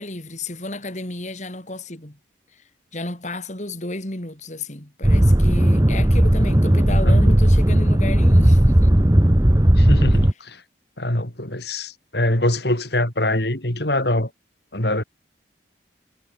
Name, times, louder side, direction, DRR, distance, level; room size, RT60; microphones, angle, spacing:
voice 1, 0.0-2.2 2.5-2.6 2.9-8.9, left 2 dB, 40° left, 3.2 m, -32 dB
sound 1, 5.0-10.3, right 1 dB, 20° right, 1.0 m, -15 dB
voice 2, 9.8-10.6 11.0-14.3 14.7-15.0, left 1 dB, 65° left, 5.2 m, -23 dB
head